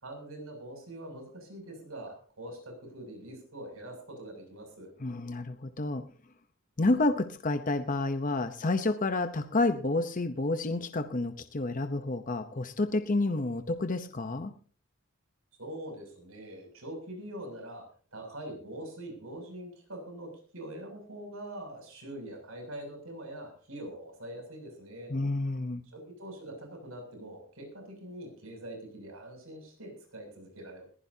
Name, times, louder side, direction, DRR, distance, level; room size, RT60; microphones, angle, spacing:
voice 1, 0.0-4.9 15.6-17.8 18.1-25.1 25.9-30.9, right 1 dB, 85° right, 3 dB, 7.1 m, -43 dB
voice 2, 5.0-6.0 6.8-14.5 25.1-25.8, left 2 dB, 40° left, 8 dB, 0.8 m, -29 dB
21.5 x 15.5 x 2.8 m, 0.43 s
head